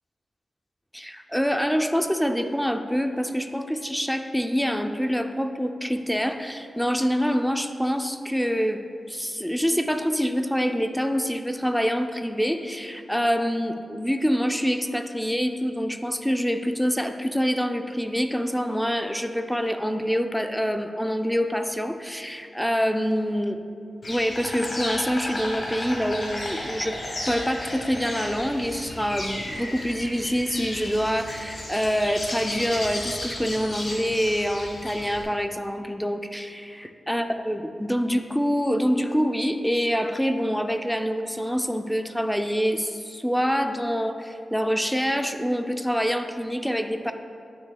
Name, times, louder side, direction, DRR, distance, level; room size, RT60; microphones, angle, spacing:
voice 1, 0.9-23.5 24.1-27.0 27.3-47.1, equal, ahead, 6 dB, 0.4 m, -26 dB
Insect, 24.0-35.2, left 1 dB, 35° left, 1.5 m, -34 dB
9.6 x 9.5 x 2.3 m, 2.4 s
wide cardioid pair, 155°, 0 cm